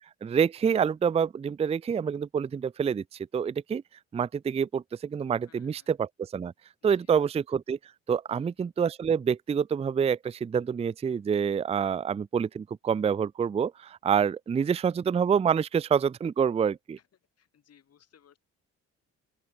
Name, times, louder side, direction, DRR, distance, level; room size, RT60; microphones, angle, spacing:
voice 1, 0.2-3.0 3.3-3.8 4.1-6.5 6.8-7.8 8.1-17.0, right 7 dB, 20° right, 0.4 m, -27 dB
voice 2, 5.4-5.9 6.9-7.1 8.3-8.5 14.6-14.7 17.0-17.1 17.4-18.4, left 9 dB, 55° left, 3.3 m, -62 dB
open air
cardioid pair, 90°, 30 cm